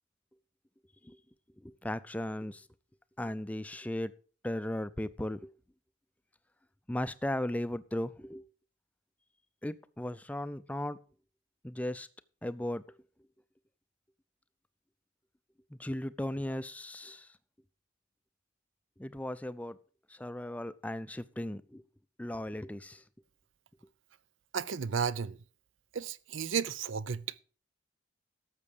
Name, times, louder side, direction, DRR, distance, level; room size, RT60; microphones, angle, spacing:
voice 1, 1.6-2.6 3.2-4.1 4.4-5.5 6.9-8.4 9.6-11.0 11.6-12.1 12.4-12.8 15.7-17.3 19.0-19.8 20.1-21.8 22.2-23.0, left 1 dB, 5° left, 0.4 m, -36 dB
voice 2, 24.5-25.4 25.9-27.4, right 6 dB, 80° right, 0.6 m, -33 dB
12.5 x 7.5 x 5.0 m
head